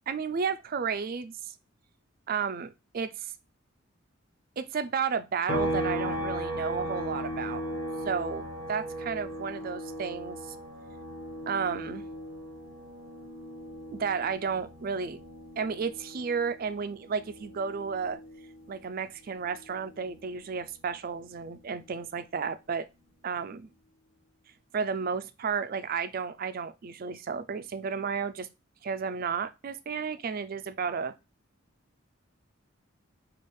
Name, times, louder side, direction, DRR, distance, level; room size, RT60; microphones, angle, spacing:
voice 1, 0.1-1.5 2.3-3.3 4.6-7.6 8.0-10.6 11.5-12.0 13.9-15.2 15.6-18.2 18.7-22.9 23.2-23.7 24.7-28.5 28.8-31.1, right 6 dB, 45° right, 0.4 m, -32 dB
sound 1, 5.5-19.0 19.4-21.6, equal, 75° left, 1.8 m, -37 dB
5.3 x 2.4 x 3.4 m
head